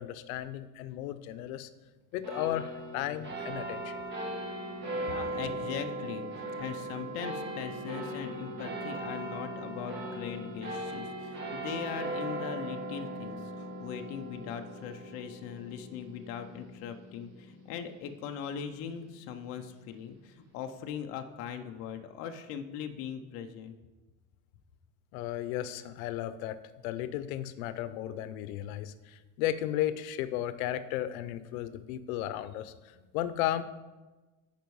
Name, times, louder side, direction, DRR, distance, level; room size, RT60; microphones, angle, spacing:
voice 1, 0.0-1.7 2.1-4.0 25.1-32.7 33.1-33.6, left 12 dB, 80° left, 13 dB, 0.6 m, -34 dB
sound 1, 2.2-19.0, right 1 dB, 25° right, 1.3 m, -39 dB
voice 2, 4.9-6.3 6.6-23.7, left 8 dB, 35° left, 6 dB, 0.5 m, -40 dB
10.5 x 4.5 x 4.6 m, 1.2 s
cardioid pair, 170°, 41 cm